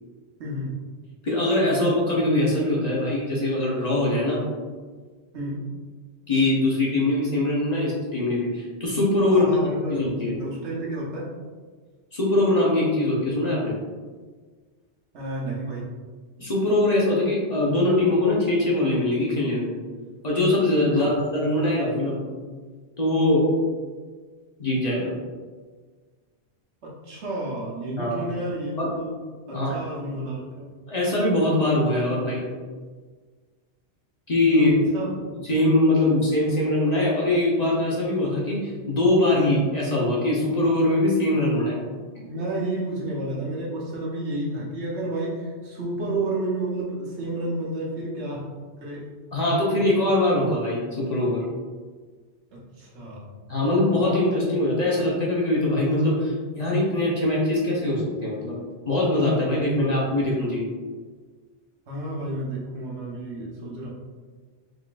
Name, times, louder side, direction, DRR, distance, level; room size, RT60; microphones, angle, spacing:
voice 1, 0.4-0.7 5.3-5.6 9.3-11.3 15.1-15.9 20.9-21.2 26.8-29.1 29.5-30.7 34.5-35.1 42.2-48.5 48.8-49.1 52.5-53.3 59.7-60.1 61.9-63.9, right 1 dB, 75° right, -4 dB, 1.2 m, -31 dB
voice 2, 1.2-4.4 6.3-9.5 9.9-10.4 12.1-13.7 16.4-19.7 20.2-22.2 23.0-23.5 24.6-25.1 28.0-28.2 28.8-28.9 29.5-29.8 30.9-32.4 34.3-41.8 49.3-51.4 53.5-58.6 58.9-60.6, left 1 dB, 40° left, -5 dB, 0.9 m, -22 dB
3.8 x 3.7 x 2.4 m, 1.5 s
omnidirectional pair, 1.2 m